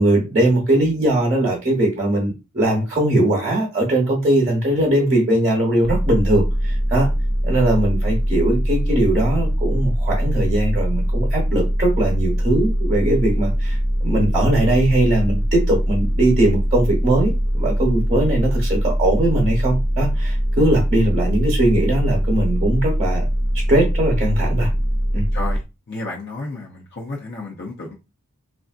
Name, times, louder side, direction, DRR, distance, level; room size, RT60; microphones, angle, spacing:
voice 1, 0.0-7.1 7.4-23.2 23.5-24.7 25.1-25.3, right 1 dB, 30° right, 1.0 m, -20 dB
sound 1, 5.8-25.6, equal, ahead, 0.4 m, -21 dB
voice 2, 25.3-27.9, left 2 dB, 50° left, 0.6 m, -32 dB
3.3 x 2.5 x 2.4 m
head